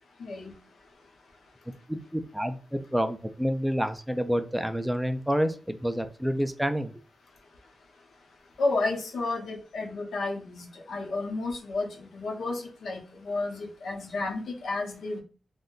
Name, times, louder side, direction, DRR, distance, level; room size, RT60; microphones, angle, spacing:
voice 1, 0.2-0.5 8.6-11.9 12.1-15.2, left 3 dB, 75° left, 1 dB, 0.7 m, -31 dB
voice 2, 1.9-6.9, equal, 5° right, 7 dB, 0.3 m, -28 dB
2.6 x 2.1 x 3.8 m, 0.36 s
wide cardioid pair, 115°, 0 cm